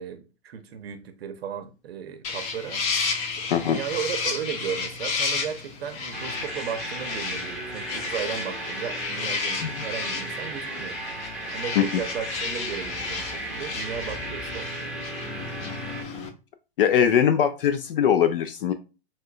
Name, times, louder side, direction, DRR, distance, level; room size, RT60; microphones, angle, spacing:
voice 1, 0.0-2.8 3.3-11.0 11.5-15.1, right 8 dB, 65° right, 0.7 m, -35 dB
sound 1, 2.2-16.3, left 4 dB, 40° left, 0.9 m, -32 dB
sound 2, 6.1-16.0, right 2 dB, ahead, 0.8 m, -35 dB
voice 2, 16.8-18.7, left 9 dB, 55° left, 0.4 m, -21 dB
5.6 x 2.2 x 2.2 m
figure-of-eight pair, 105°, 33 cm